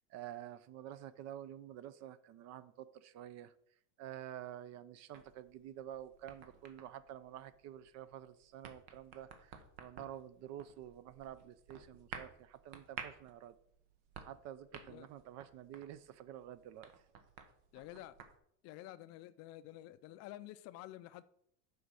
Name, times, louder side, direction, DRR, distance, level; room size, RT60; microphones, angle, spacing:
voice 1, 0.1-3.5 4.0-13.5 14.3-16.9, right 11 dB, 45° right, 0.6 m, -49 dB
sound 1, 5.1-18.4, right 7 dB, 65° right, 1.4 m, -54 dB
voice 2, 14.7-15.1 17.7-18.1 18.6-21.2, left 15 dB, 45° left, 0.4 m, -50 dB
6.9 x 5.1 x 6.2 m
supercardioid pair, 140°, 37 cm